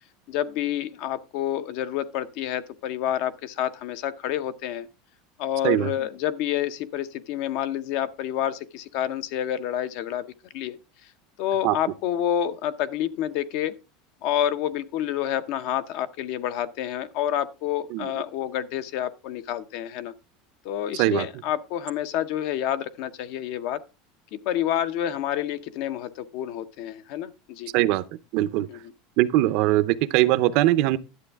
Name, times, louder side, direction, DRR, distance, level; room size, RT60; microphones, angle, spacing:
voice 1, 0.3-4.9 5.4-10.3 10.5-10.8 11.4-13.8 14.2-20.1 20.6-23.8 24.3-27.7 28.7-28.9, left 11 dB, 50° left, 0.7 m, -28 dB
voice 2, 28.3-28.7 29.2-31.0, right 15 dB, 45° right, 0.5 m, -21 dB
11.0 x 7.9 x 3.4 m
supercardioid pair, 180°, 0 cm